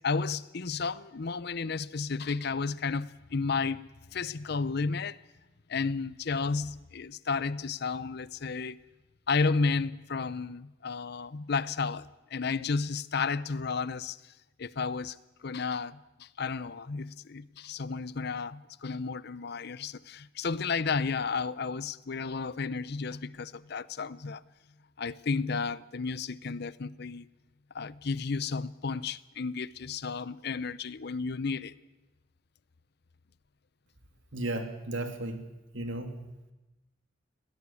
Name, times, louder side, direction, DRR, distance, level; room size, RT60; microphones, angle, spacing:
voice 1, 0.0-5.2 5.7-8.8 9.3-14.2 14.6-24.4 25.0-27.3 27.7-31.7, left 4 dB, 55° left, 0.6 m, -32 dB
voice 2, 34.3-35.5 35.7-36.1, right 1 dB, 80° right, 2.7 m, -34 dB
21.5 x 17.0 x 8.4 m
head